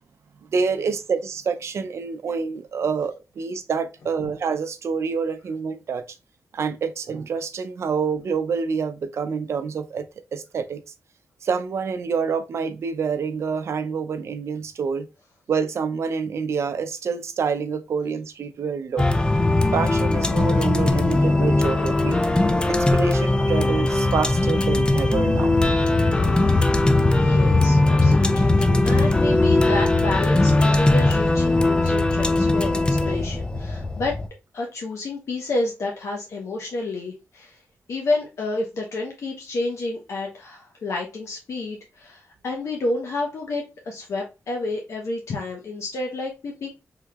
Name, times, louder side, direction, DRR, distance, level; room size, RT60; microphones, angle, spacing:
voice 1, 0.5-6.1 6.5-10.1 10.3-10.8 11.4-15.1 15.5-19.1 19.7-22.2 22.7-25.6, right 5 dB, 65° right, 0.4 m, -27 dB
sound 1, 19.0-34.3, left 2 dB, 20° left, 0.4 m, -19 dB
voice 2, 27.1-34.2 34.5-37.6 37.9-46.8, left 2 dB, 70° left, 0.7 m, -30 dB
3.7 x 2.8 x 2.3 m
cardioid pair, 90°, 5 cm